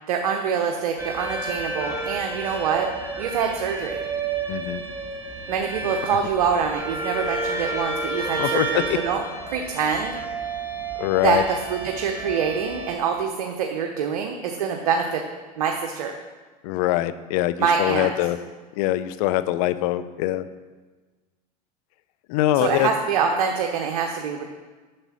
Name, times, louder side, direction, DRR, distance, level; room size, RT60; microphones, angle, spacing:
voice 1, 0.1-2.9 3.2-4.0 5.5-9.2 9.5-10.2 11.2-11.4 11.7-15.2 15.6-16.2 17.6-18.1 22.6-24.4, right 6 dB, 80° right, 3 dB, 0.9 m, -25 dB
sound 1, 1.0-13.0, right 3 dB, 10° right, 1.5 m, -31 dB
voice 2, 4.5-4.8 6.1-6.2 8.4-9.0 11.0-11.4 16.6-18.4 18.7-20.5 22.3-22.9, left 14 dB, 65° left, 14 dB, 0.6 m, -23 dB
7.6 x 6.7 x 6.2 m, 1.3 s
hypercardioid pair, 105°, 21 cm